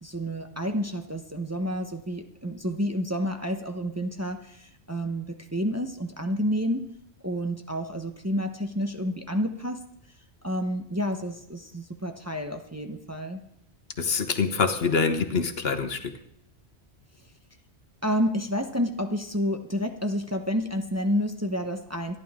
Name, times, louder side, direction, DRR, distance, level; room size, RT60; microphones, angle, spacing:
voice 1, 0.0-7.0 7.2-9.8 10.4-13.4 18.0-22.2, equal, 15° right, 5 dB, 0.9 m, -29 dB
voice 2, 14.0-16.1, left 5 dB, 65° left, 8 dB, 1.3 m, -25 dB
25.5 x 11.0 x 3.6 m, 0.75 s
omnidirectional pair, 1.1 m